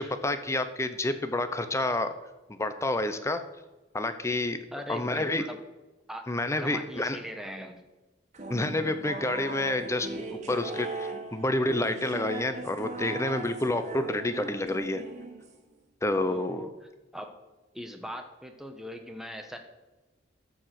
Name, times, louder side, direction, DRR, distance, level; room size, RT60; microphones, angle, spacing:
voice 1, 0.0-2.1 2.5-3.4 3.9-4.6 4.9-5.4 6.3-7.2 8.5-10.1 10.5-10.9 11.3-15.0 16.0-16.7, left 2 dB, 15° left, 9 dB, 0.7 m, -28 dB
voice 2, 4.7-5.6 6.1-6.3 6.6-7.8 10.5-10.6 16.2-16.7 17.1-17.3 17.7-19.6, equal, ahead, 5 dB, 1.1 m, -40 dB
sound 1, 8.3-15.7, right 2 dB, 40° right, 1.6 m, -39 dB
13.5 x 4.8 x 7.5 m, 1.1 s
head